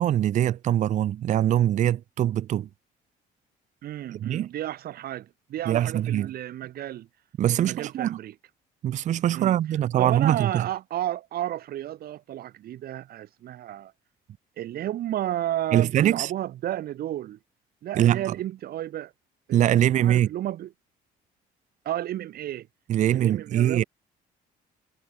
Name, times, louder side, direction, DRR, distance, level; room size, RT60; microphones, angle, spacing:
voice 1, 0.0-2.7 4.1-4.5 5.6-6.3 7.4-8.2 8.8-10.7 15.7-16.3 17.9-18.3 19.5-20.3 22.9-23.8, right 11 dB, 45° right, 0.5 m, -23 dB
voice 2, 3.8-7.1 7.6-8.3 9.3-9.6 10.0-13.9 14.6-17.4 17.8-19.1 19.5-20.7 21.8-22.7 23.1-23.8, right 12 dB, 65° right, 2.6 m, -32 dB
cardioid pair, 110°, 17 cm